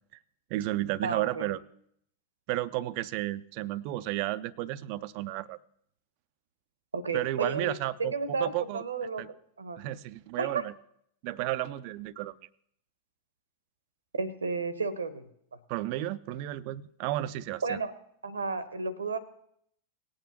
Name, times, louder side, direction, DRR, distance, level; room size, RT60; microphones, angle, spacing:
voice 1, 0.5-1.6 2.5-5.6 7.1-8.8 9.2-9.3 9.8-10.7 11.2-12.3 15.7-17.8, right 15 dB, 45° right, 17 dB, 0.4 m, -32 dB
voice 2, 1.0-1.5 6.9-7.7 8.1-9.2 9.6-9.8 10.4-10.6 14.2-15.2 17.6-17.9 18.2-19.2, right 4 dB, 75° right, 15 dB, 0.9 m, -32 dB
18.5 x 8.8 x 3.0 m, 0.69 s
figure-of-eight pair, 90°, 0 cm